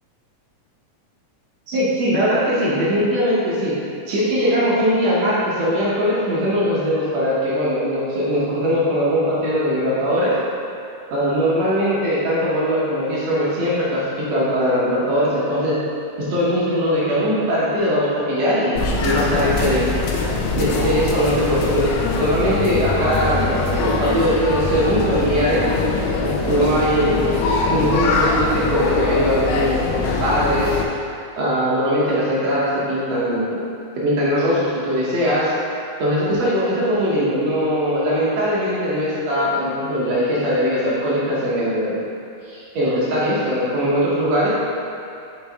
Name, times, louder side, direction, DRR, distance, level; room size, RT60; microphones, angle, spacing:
voice 1, 1.7-3.7 4.1-10.3 11.1-15.8 16.2-20.0 20.5-21.9 22.2-25.7 26.2-27.3 27.7-30.8 31.4-33.6 34.0-35.5 36.0-42.0 42.5-44.5, equal, 65° right, -8 dB, 1.8 m, -20 dB
sound 1, 18.8-30.9, left 3 dB, 80° left, 1.6 m, -22 dB
7.2 x 4.7 x 3.5 m, 2.6 s
omnidirectional pair, 3.8 m